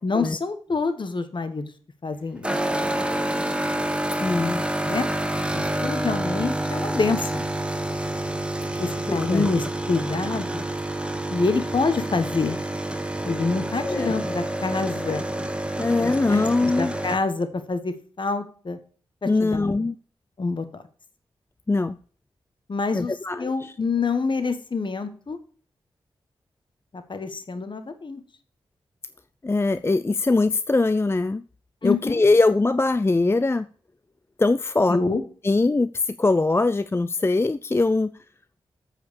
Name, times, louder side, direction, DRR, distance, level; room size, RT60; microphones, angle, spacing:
voice 1, 0.0-1.7 2.0-2.5 4.8-5.1 5.5-7.4 8.8-10.6 11.3-12.6 13.2-15.2 16.0-18.8 19.2-19.7 20.4-20.8 22.7-23.1 23.4-25.4 26.9-28.2 31.8-32.2 34.9-35.2, left 4 dB, 50° left, 9 dB, 1.5 m, -26 dB
sound 1, 2.4-17.2, right 1 dB, 10° right, 1.2 m, -28 dB
voice 2, 4.2-4.6 9.1-9.5 13.8-14.2 15.8-17.0 19.3-19.9 21.7-22.0 22.9-23.7 29.4-31.4 31.8-33.7 34.4-35.0 35.4-38.1, left 3 dB, 25° left, 14 dB, 0.4 m, -22 dB
8.5 x 4.9 x 6.4 m, 0.43 s
cardioid pair, 40°, 10 cm